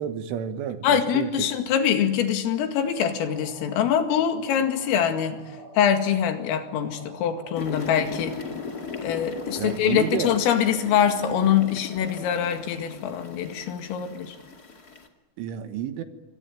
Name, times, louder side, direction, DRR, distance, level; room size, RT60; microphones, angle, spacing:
voice 1, 0.0-1.5 9.6-10.3 15.4-16.0, right 9 dB, 75° right, 9 dB, 3.9 m, -31 dB
voice 2, 0.8-5.4 5.8-8.4 9.0-14.4, left 8 dB, 80° left, 7 dB, 4.7 m, -24 dB
sound 1, 2.8-12.8, right 1 dB, 35° left, 5.8 m, -46 dB
sound 2, 7.5-15.1, left 5 dB, 55° left, 1.0 m, -37 dB
26.5 x 24.5 x 9.1 m, 1.0 s
omnidirectional pair, 5.9 m